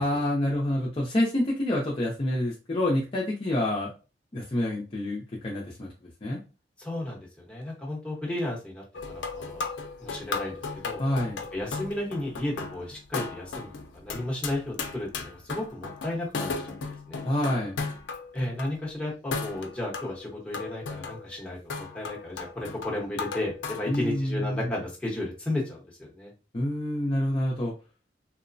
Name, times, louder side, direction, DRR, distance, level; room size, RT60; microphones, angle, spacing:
voice 1, 0.0-3.9 4.3-5.9 6.2-6.4 11.0-11.4 17.2-17.8 23.9-24.8 26.5-27.7, left 1 dB, 30° left, -3 dB, 0.5 m, -27 dB
voice 2, 6.8-9.6 10.0-11.0 11.5-16.7 17.1-17.2 18.3-26.3, left 1 dB, 5° left, -4 dB, 0.8 m, -34 dB
sound 1, 8.9-18.7 19.3-24.0, left 4 dB, 90° left, 0.5 m, -36 dB
3.0 x 2.0 x 2.5 m, 0.31 s
head